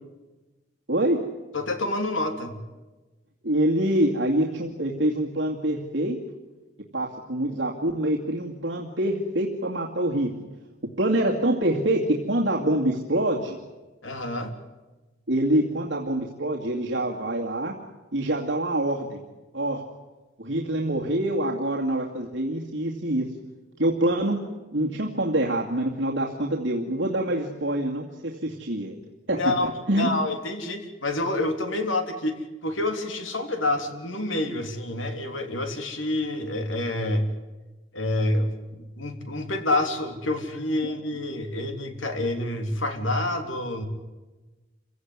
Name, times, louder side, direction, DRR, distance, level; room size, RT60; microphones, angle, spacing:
voice 1, 0.9-1.2 3.4-6.2 6.9-10.3 11.0-13.6 15.3-17.7 18.1-19.2 19.5-19.8 20.4-23.3 23.8-24.4 24.7-29.0 29.3-29.4 29.9-30.1 40.8-40.9, right 1 dB, 65° right, -1 dB, 2.4 m, -25 dB
voice 2, 1.5-2.6 14.0-14.5 29.3-29.7 30.0-37.3 37.9-43.8, left 2 dB, 80° left, 6 dB, 3.4 m, -28 dB
28.0 x 17.0 x 9.7 m, 1.2 s
head